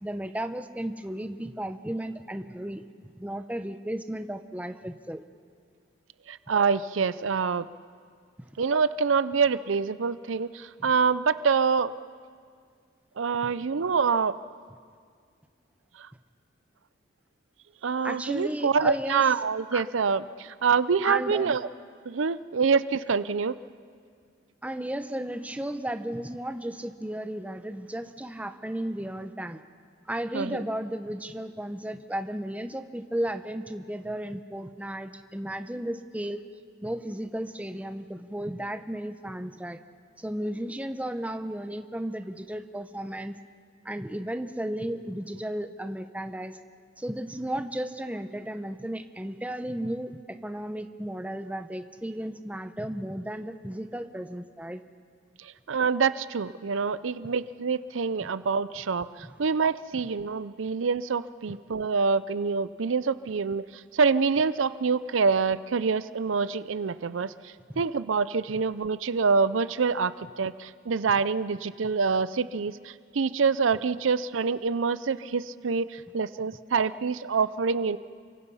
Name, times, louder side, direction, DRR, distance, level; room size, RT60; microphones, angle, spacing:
voice 1, 0.0-2.8 3.2-5.2 8.4-8.5 10.8-10.9 18.0-19.2 19.7-19.8 21.0-21.6 24.6-29.6 30.1-36.4 36.8-39.8 40.2-43.4 43.8-46.6 47.0-54.8 58.2-58.3 59.2-59.3 61.5-61.6 67.7-67.8, right 1 dB, 10° right, 9 dB, 0.8 m, -34 dB
voice 2, 6.3-7.7 8.6-11.9 13.2-14.4 17.8-21.6 22.1-23.6 30.3-30.6 55.7-59.1 59.4-63.6 63.9-67.3 67.8-78.0, right 5 dB, 90° right, 15 dB, 0.6 m, -26 dB
29.0 x 24.5 x 5.6 m, 2.1 s
head